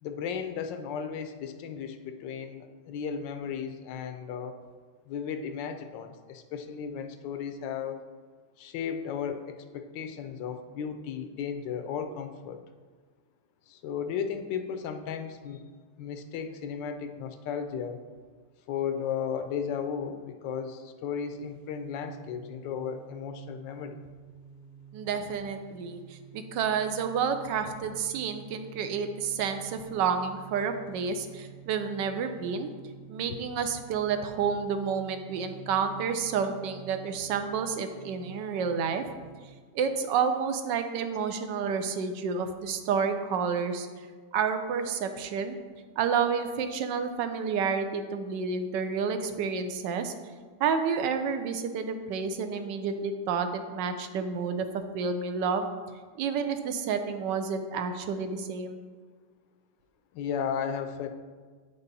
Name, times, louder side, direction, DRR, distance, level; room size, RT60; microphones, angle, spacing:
voice 1, 0.0-4.6 5.1-8.0 8.6-12.6 13.7-15.6 16.0-18.0 18.7-24.0 33.3-33.4 60.1-61.1, left 7 dB, 90° left, 8 dB, 1.3 m, -35 dB
sound 1, 21.4-39.7, right 8 dB, 65° right, 2.2 m, -50 dB
voice 2, 24.9-32.7 33.1-39.1 39.7-43.9 44.3-45.6 46.0-50.1 50.6-55.7 56.2-58.8, right 6 dB, 85° right, 8 dB, 1.3 m, -30 dB
8.0 x 5.4 x 4.0 m, 1.5 s
omnidirectional pair, 1.9 m